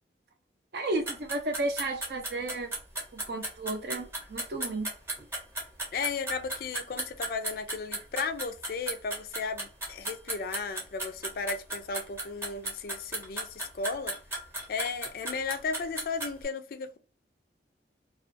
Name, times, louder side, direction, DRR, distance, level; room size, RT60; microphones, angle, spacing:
voice 1, 0.7-2.7 3.1-4.9, right 2 dB, 60° right, 0.5 m, -33 dB
sound 1, 1.1-16.4, right 1 dB, 15° right, 0.8 m, -35 dB
voice 2, 5.9-14.1 14.7-17.0, left 4 dB, 55° left, 0.3 m, -35 dB
2.4 x 2.2 x 2.5 m
head